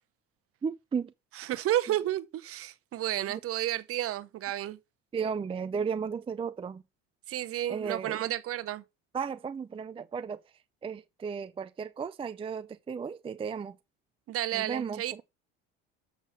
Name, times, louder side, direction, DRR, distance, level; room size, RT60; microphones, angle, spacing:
voice 1, 0.6-1.1 3.3-3.4 5.1-6.8 7.7-8.2 9.1-10.4 10.8-13.7 14.5-15.2, right 6 dB, 20° right, 0.5 m, -34 dB
voice 2, 1.3-4.8 7.3-8.8 14.3-15.2, right 13 dB, 50° right, 1.0 m, -31 dB
7.2 x 5.8 x 5.8 m
supercardioid pair, 80°, 29 cm